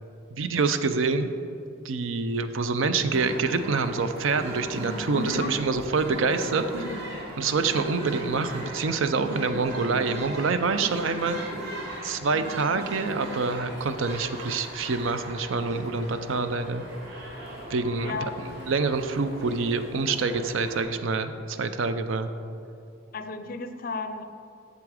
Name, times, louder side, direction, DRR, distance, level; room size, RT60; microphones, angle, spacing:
voice 1, 0.3-1.3 1.8-7.0 7.4-11.4 12.0-16.8 17.7-22.3, right 4 dB, 75° right, 10 dB, 0.5 m, -26 dB
sound 1, 3.1-20.8, right 1 dB, 55° right, 2.1 m, -38 dB
voice 2, 5.1-5.6 18.0-18.4 23.1-24.3, left 3 dB, 45° left, 9 dB, 0.4 m, -33 dB
8.3 x 7.0 x 4.9 m, 2.5 s
head